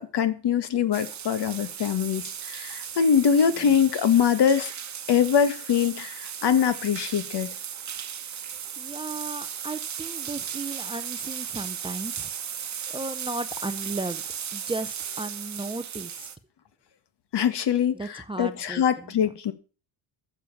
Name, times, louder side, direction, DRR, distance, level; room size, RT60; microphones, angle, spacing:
voice 1, 0.0-4.7 5.1-7.5 17.3-19.5, left 8 dB, 55° left, 1.8 m, -23 dB
sound 1, 0.9-16.4, right 8 dB, 35° right, 1.2 m, -36 dB
voice 2, 8.8-12.3 12.9-14.2 14.5-16.3 17.9-18.8 19.2-19.3, right 2 dB, 10° right, 0.5 m, -35 dB
13.5 x 7.2 x 7.1 m
cardioid pair, 140°, 49 cm